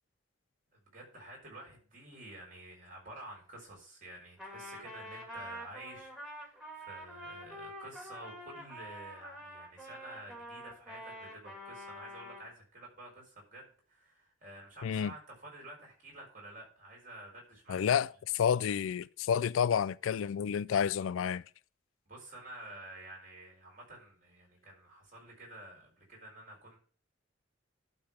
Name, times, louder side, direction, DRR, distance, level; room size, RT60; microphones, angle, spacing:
voice 1, 0.7-18.0 22.1-26.8, right 1 dB, 40° right, 4.7 m, -50 dB
Trumpet, 4.4-12.5, equal, 5° right, 2.3 m, -46 dB
voice 2, 14.8-15.1 17.7-21.4, left 8 dB, 85° left, 0.3 m, -30 dB
11.5 x 3.9 x 7.2 m
head